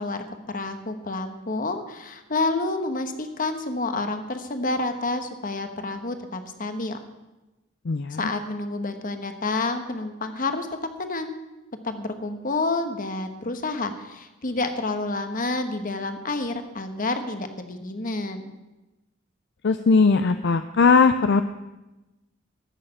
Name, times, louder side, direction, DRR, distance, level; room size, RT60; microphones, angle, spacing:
voice 1, 0.0-7.0 8.1-11.3 11.8-18.5, left 2 dB, 45° left, 8 dB, 1.2 m, -29 dB
voice 2, 7.9-8.3 19.6-21.4, left 4 dB, 60° left, 9 dB, 0.5 m, -19 dB
13.5 x 6.7 x 8.8 m, 1.0 s
head